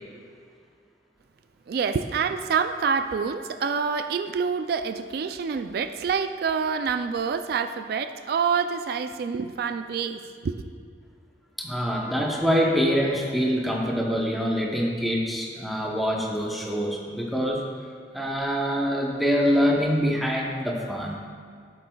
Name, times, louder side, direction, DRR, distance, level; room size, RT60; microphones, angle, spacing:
voice 1, 1.7-10.6, right 6 dB, 60° right, 10 dB, 0.3 m, -27 dB
voice 2, 11.6-17.6 18.1-21.2, equal, ahead, -2 dB, 0.8 m, -25 dB
12.0 x 7.7 x 2.3 m, 2.2 s
head